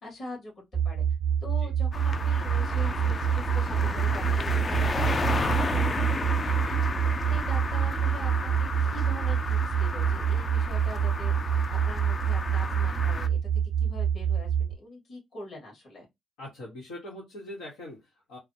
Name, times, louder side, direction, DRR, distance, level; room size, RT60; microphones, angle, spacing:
voice 1, 0.0-1.0 1.4-6.8 7.3-11.3 11.7-13.4 13.8-16.1, left 1 dB, 55° left, 2.4 m, -43 dB
sound 1, 0.7-14.7, right 8 dB, 30° right, 0.5 m, -26 dB
sound 2, 1.9-13.3, left 4 dB, 35° left, 0.5 m, -33 dB
voice 2, 5.7-6.2 6.5-6.8 16.4-18.4, left 1 dB, 85° left, 1.3 m, -43 dB
3.8 x 2.1 x 2.8 m
cardioid pair, 90°, 0 cm